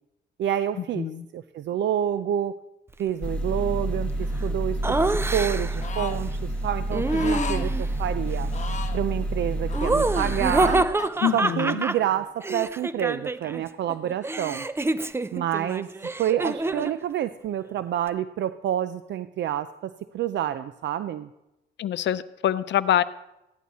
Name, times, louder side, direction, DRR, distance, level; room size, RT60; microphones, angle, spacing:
voice 1, 0.4-1.1 1.3-2.6 3.0-8.5 8.9-10.8 11.3-14.7 15.3-15.9 16.2-21.3, right 10 dB, 65° right, 13 dB, 0.5 m, -28 dB
sound 1, 3.2-10.8, right 1 dB, 5° left, 1.4 m, -28 dB
Laughter, 4.8-5.9 6.9-7.9 9.7-13.6 13.9-17.0, right 2 dB, 10° right, 0.5 m, -27 dB
sound 2, 5.8-6.2 7.1-7.7 8.5-9.0 9.7-11.1, left 6 dB, 35° left, 1.2 m, -36 dB
voice 2, 11.2-11.8 21.8-23.0, left 11 dB, 65° left, 14 dB, 0.6 m, -25 dB
15.5 x 11.5 x 4.2 m, 0.91 s
cardioid pair, 90°, 20 cm